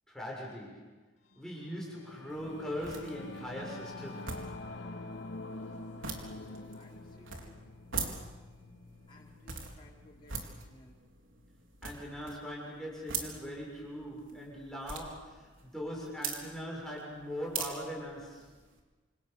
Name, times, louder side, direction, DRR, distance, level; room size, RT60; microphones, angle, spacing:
voice 1, 0.1-1.0 1.3-4.4 11.8-18.6, equal, 5° left, -3 dB, 6.8 m, -41 dB
Singing / Musical instrument, 1.3-11.0, left 2 dB, 70° left, 3.2 m, -47 dB
sound 1, 2.3-18.8, right 5 dB, 80° right, 4.3 m, -44 dB
voice 2, 6.1-7.5 9.1-11.0, left 1 dB, 25° left, -5 dB, 5.2 m, -60 dB
28.5 x 27.0 x 6.9 m, 1.2 s
head